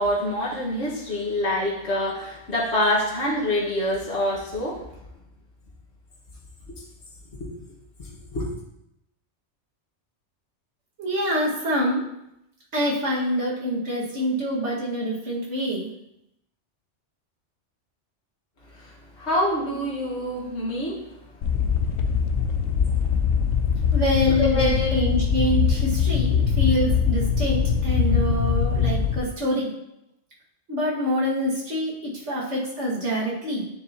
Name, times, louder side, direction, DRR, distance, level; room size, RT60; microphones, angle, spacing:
voice 1, 0.0-4.8 6.7-6.8 7.4-7.5 8.0-8.5 18.7-21.0 24.4-25.0, left 1 dB, 65° left, -5 dB, 1.9 m, -26 dB
voice 2, 11.0-12.0 12.7-15.9 23.9-29.7 30.7-33.7, equal, 75° right, -5 dB, 2.1 m, -26 dB
sound 1, 21.4-29.2, left 7 dB, 85° left, 1.0 m, -22 dB
9.6 x 7.1 x 2.9 m, 0.82 s
omnidirectional pair, 1.2 m